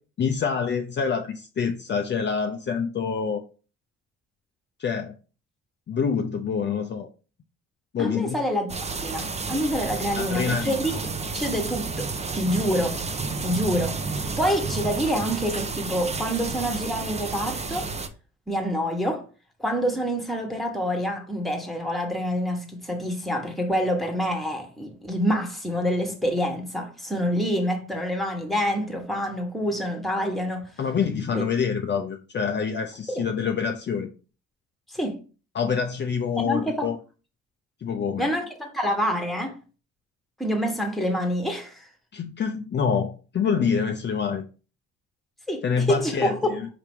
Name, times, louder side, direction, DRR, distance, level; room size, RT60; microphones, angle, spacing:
voice 1, 0.2-3.4 4.8-5.1 5.9-7.1 7.9-8.4 10.2-10.8 30.8-34.1 35.5-37.0 37.8-38.3 42.1-44.4 45.6-46.7, left 6 dB, 40° left, 0.5 m, -26 dB
voice 2, 8.0-8.7 9.0-10.9 11.3-12.1 12.3-13.1 13.4-17.9 18.5-19.2 19.6-30.7 31.3-31.5 33.1-33.3 34.9-35.2 36.4-36.9 38.2-39.6 40.4-41.9 45.5-46.5, equal, ahead, 1.2 m, -27 dB
sound 1, 8.7-18.1, right 4 dB, 20° right, 0.5 m, -31 dB
4.8 x 2.9 x 3.5 m
cardioid pair, 90°, 30 cm